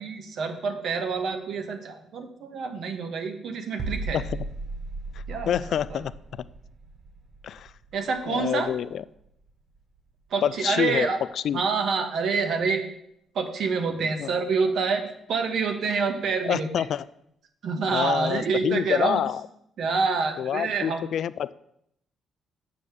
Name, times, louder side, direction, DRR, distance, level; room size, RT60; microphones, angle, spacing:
voice 1, 0.0-4.2 5.3-5.6 5.9-6.0 7.9-8.7 10.3-11.2 11.5-12.8 13.3-16.8 17.6-19.2 19.8-21.0, right 4 dB, 65° right, 6 dB, 1.3 m, -27 dB
sound 1, 3.8-9.5 9.8-10.0, right 3 dB, 45° right, 0.7 m, -37 dB
voice 2, 4.1-4.4 5.5-6.5 7.4-7.7 8.3-9.0 10.4-11.1 11.4-11.6 14.0-14.3 16.4-17.0 17.9-19.4 20.4-21.5, left 9 dB, 65° left, 17 dB, 0.3 m, -27 dB
7.5 x 5.0 x 7.0 m, 0.76 s
cardioid pair, 90°, 0 cm